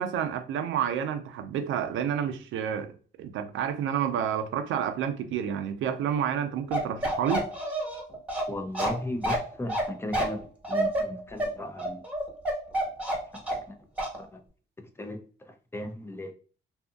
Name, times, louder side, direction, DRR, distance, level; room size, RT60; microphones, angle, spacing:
voice 1, 0.0-2.9 3.2-7.4, right 8 dB, 75° right, 0.5 m, -29 dB
Bark, 6.7-13.7 14.0-14.2, right 1 dB, 5° right, 1.2 m, -29 dB
voice 2, 8.5-10.4 10.7-12.0 13.6-13.7 14.2-14.4 15.0-16.3, left 1 dB, 10° left, 0.6 m, -36 dB
2.7 x 2.5 x 2.3 m
cardioid pair, 90°, 20 cm